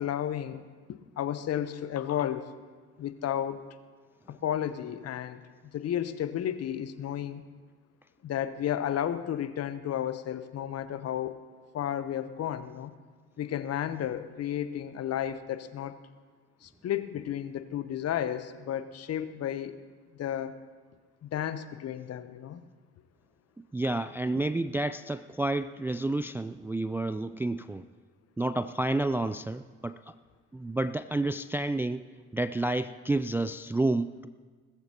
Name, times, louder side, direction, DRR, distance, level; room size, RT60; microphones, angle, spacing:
voice 1, 0.0-2.5 3.0-3.6 4.3-5.4 5.7-7.4 8.2-11.4 11.7-12.9 13.4-15.9 16.6-19.8 20.2-20.6 21.2-22.6 24.3-24.4, left 10 dB, 45° left, 12 dB, 0.9 m, -32 dB
voice 2, 23.6-27.8 28.4-30.0 30.5-32.1 32.3-34.3, right 2 dB, 5° right, 11 dB, 0.3 m, -30 dB
19.5 x 14.0 x 2.9 m, 1.5 s
hypercardioid pair, 50°, 34 cm